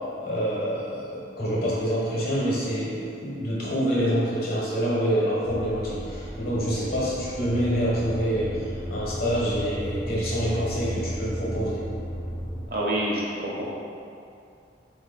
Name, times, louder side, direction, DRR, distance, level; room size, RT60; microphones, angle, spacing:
voice 1, 0.2-11.8, equal, 60° left, -7 dB, 1.3 m, -26 dB
sound 1, 5.4-12.6, equal, 20° left, 0.5 m, -34 dB
voice 2, 12.7-13.7, right 1 dB, 60° right, -5 dB, 0.9 m, -27 dB
4.1 x 2.9 x 4.2 m, 2.6 s
head